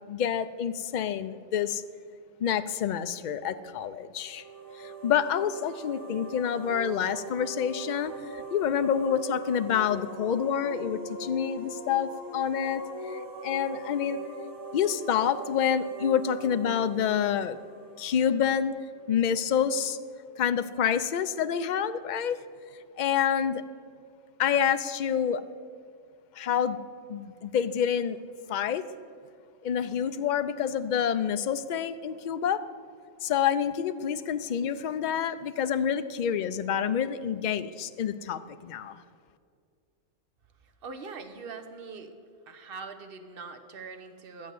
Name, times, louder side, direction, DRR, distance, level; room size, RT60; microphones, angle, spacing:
voice 1, 0.1-1.8 2.4-4.4 4.8-12.8 13.1-14.2 14.7-17.6 18.0-18.7 19.1-20.0 20.4-22.4 23.0-23.6 24.4-25.4 26.4-26.8 27.1-28.2 28.5-28.8 29.6-32.6 33.2-39.0, left 8 dB, 55° left, 11 dB, 0.5 m, -28 dB
sound 1, 4.2-18.9, right 3 dB, 15° right, 1.1 m, -41 dB
voice 2, 40.8-42.1 42.5-44.5, right 4 dB, 50° right, 7 dB, 1.1 m, -42 dB
12.5 x 8.1 x 7.7 m, 2.2 s
omnidirectional pair, 1.3 m